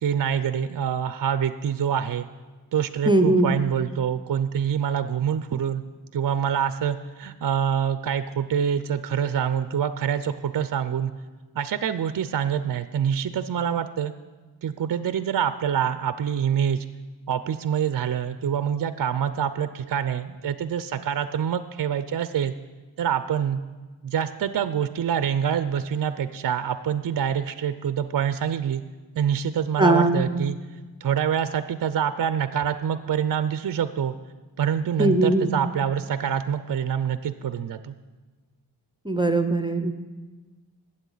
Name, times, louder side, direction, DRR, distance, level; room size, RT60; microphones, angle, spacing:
voice 1, 0.0-2.3 2.7-5.8 6.1-11.1 11.6-14.1 14.6-16.9 17.3-22.5 23.0-23.6 24.0-28.8 29.2-30.6 31.0-34.1 34.6-37.9, right 8 dB, 50° right, 12 dB, 0.5 m, -26 dB
voice 2, 3.1-3.5 29.8-30.3 35.0-35.6 39.1-39.9, right 2 dB, 10° right, 7 dB, 0.6 m, -20 dB
20.5 x 7.8 x 3.9 m, 1.3 s
cardioid pair, 75°, 43 cm